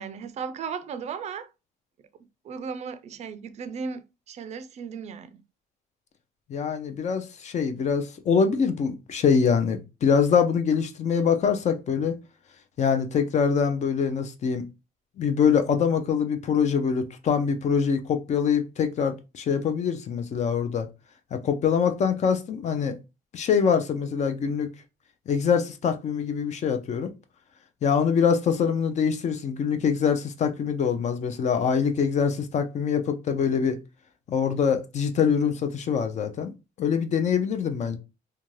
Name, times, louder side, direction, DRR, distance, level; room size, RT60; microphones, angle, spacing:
voice 1, 0.0-1.5 2.4-5.4, right 6 dB, 40° right, 0.4 m, -36 dB
voice 2, 6.5-12.2 12.8-14.6 15.2-20.9 21.3-23.0 23.3-24.7 25.3-27.1 27.8-33.8 34.3-36.5 36.8-38.0, left 6 dB, 45° left, 0.5 m, -24 dB
2.5 x 2.2 x 3.1 m
cardioid pair, 110°, 17 cm